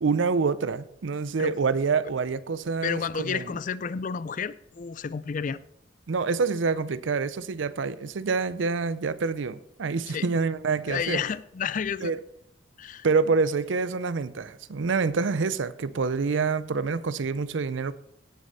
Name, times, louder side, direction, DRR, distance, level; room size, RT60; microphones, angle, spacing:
voice 1, 0.0-3.5 6.1-11.2 12.0-12.2 13.0-17.9, right 4 dB, 80° right, 0.5 m, -27 dB
voice 2, 2.8-5.6 10.1-10.3 10.9-12.1 12.8-13.1, left 6 dB, 45° left, 0.4 m, -31 dB
17.0 x 6.5 x 4.1 m
head